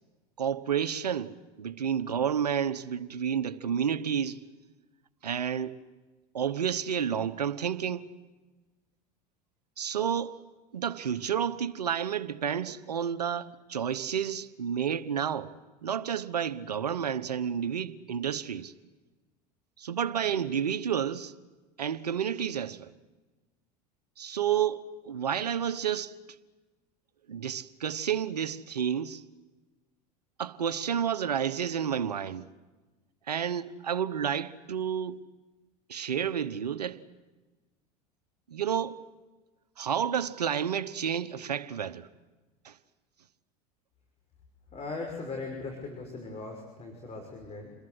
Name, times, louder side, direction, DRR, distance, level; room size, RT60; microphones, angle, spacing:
voice 1, 0.4-4.4 5.2-5.8 6.3-8.1 9.8-10.4 10.7-15.5 15.8-18.7 19.8-21.3 21.8-22.9 24.2-26.1 27.3-29.2 30.4-32.4 33.3-35.2 35.9-37.0 38.5-39.0 39.8-42.1 42.6-42.7, right 8 dB, 85° right, 1.1 m, -30 dB
voice 2, 44.7-47.7, left 3 dB, 30° left, 6.2 m, -39 dB
28.0 x 22.0 x 8.1 m
hypercardioid pair, 80°, 20 cm